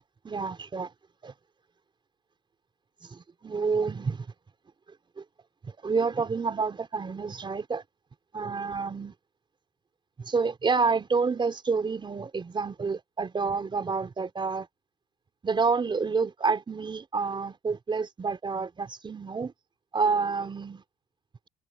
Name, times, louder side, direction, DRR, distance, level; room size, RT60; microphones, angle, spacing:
voice 1, 0.2-0.9 1.2-1.3 3.1-4.2 5.8-7.8 8.3-9.1 10.3-14.7 15.4-19.5 19.9-20.8, right 4 dB, 30° right, 4.7 m, -28 dB
cardioid pair, 110°, 17 cm